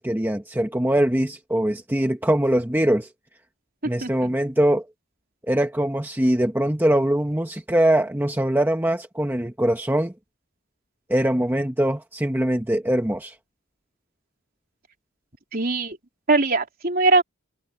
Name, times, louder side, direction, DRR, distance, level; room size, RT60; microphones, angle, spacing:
voice 1, 0.0-3.1 3.8-4.8 5.5-10.1 11.1-13.3, right 1 dB, 10° right, 1.0 m, -22 dB
voice 2, 15.5-16.0 16.3-17.2, right 3 dB, 45° right, 3.6 m, -21 dB
head